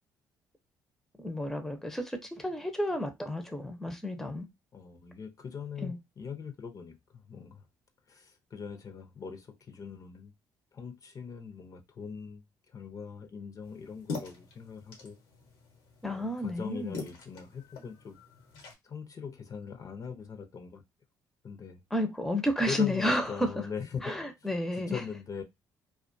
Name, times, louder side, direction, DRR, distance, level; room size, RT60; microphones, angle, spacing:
voice 1, 1.2-4.5 5.8-6.0 16.0-17.0 21.9-23.5 24.0-25.0, left 1 dB, 5° left, 0.6 m, -31 dB
voice 2, 4.7-7.7 8.1-10.3 10.7-15.2 16.0-18.2 18.8-20.8 21.4-21.8 22.7-24.1 24.8-25.4, left 6 dB, 45° left, 0.6 m, -41 dB
sound 1, 13.6-18.7, left 4 dB, 90° left, 1.0 m, -44 dB
2.4 x 2.2 x 2.5 m
supercardioid pair, 70°, 8 cm